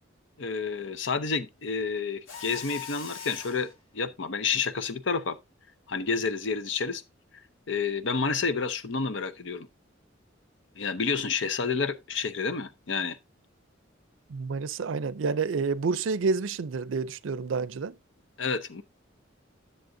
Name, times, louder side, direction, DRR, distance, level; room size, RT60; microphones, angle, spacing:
voice 1, 0.4-5.4 5.9-7.0 7.7-9.7 10.8-13.2 18.4-18.8, left 5 dB, 65° left, 0.7 m, -29 dB
Mechanisms, 2.3-3.7, left 7 dB, 90° left, 1.4 m, -40 dB
voice 2, 14.3-17.9, right 4 dB, 75° right, 0.5 m, -29 dB
10.5 x 6.8 x 2.6 m
head